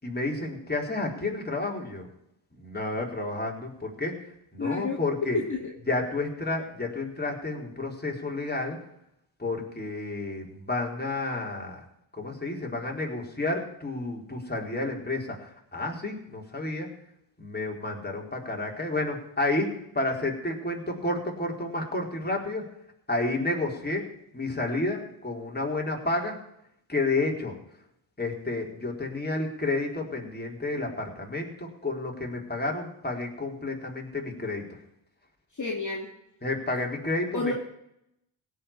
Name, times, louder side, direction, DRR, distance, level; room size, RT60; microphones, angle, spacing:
voice 1, 0.0-2.1 2.6-5.4 5.9-8.8 9.4-11.8 12.2-16.9 17.4-19.7 19.9-22.6 23.1-24.1 24.3-26.4 26.9-27.5 28.2-34.6 36.4-37.5, left 2 dB, 20° left, 0 dB, 4.3 m, -30 dB
voice 2, 4.6-5.0 5.3-5.7 35.6-36.1 37.3-37.5, left 3 dB, 35° left, -1 dB, 2.6 m, -29 dB
17.0 x 5.9 x 8.8 m, 0.80 s
supercardioid pair, 50°, 50 cm